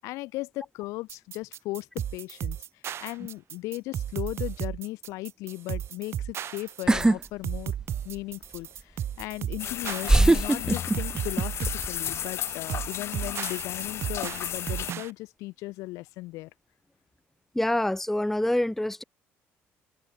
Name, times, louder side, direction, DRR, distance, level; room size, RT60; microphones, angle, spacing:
voice 1, 0.0-2.6 3.0-7.7 8.0-16.5, left 20 dB, 80° left, 8.0 m, -37 dB
sound 1, 1.1-15.1, right 10 dB, 55° right, 1.9 m, -34 dB
sound 2, 6.9-7.2 7.5-8.2 9.2-9.3 10.1-11.4 11.7-12.2, right 2 dB, 15° right, 0.7 m, -21 dB
sound 3, 9.6-14.9, left 10 dB, 55° left, 2.6 m, -34 dB
voice 2, 17.5-19.0, left 1 dB, 5° left, 1.9 m, -26 dB
cardioid pair, 90°, 5 cm